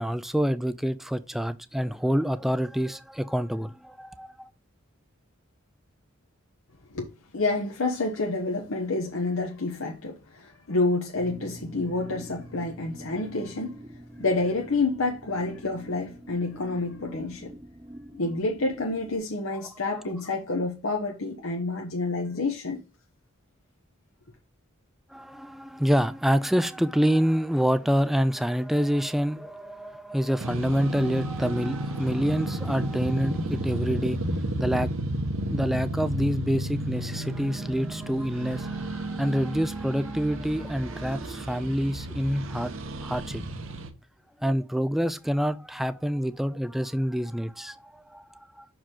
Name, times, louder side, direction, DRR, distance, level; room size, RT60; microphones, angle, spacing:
voice 1, 0.0-4.5 19.9-20.0 25.1-34.2 34.6-34.9 35.5-42.7 43.0-43.4 44.4-48.7, equal, ahead, 0.3 m, -27 dB
voice 2, 7.3-13.8 14.2-17.5 18.1-22.8, left 3 dB, 80° left, 1.0 m, -28 dB
sound 1, 11.1-19.2, equal, 20° right, 0.7 m, -45 dB
sound 2, 30.4-43.9, right 1 dB, 75° right, 1.0 m, -32 dB
6.2 x 4.8 x 3.7 m
head